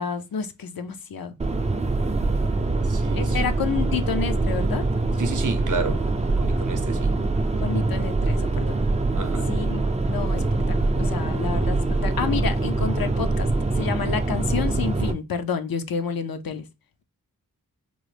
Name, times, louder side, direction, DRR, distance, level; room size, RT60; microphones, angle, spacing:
voice 1, 0.0-1.4 3.1-4.8 7.6-8.8 9.5-13.5 13.7-16.7, left 6 dB, 75° left, 0.5 m, -30 dB
sound 1, 1.4-15.1, right 2 dB, 20° right, 0.3 m, -24 dB
voice 2, 2.8-3.4 5.2-6.1 6.4-7.2 9.2-9.5, right 4 dB, 55° right, 0.6 m, -30 dB
3.7 x 2.0 x 3.2 m
wide cardioid pair, 65°, 36 cm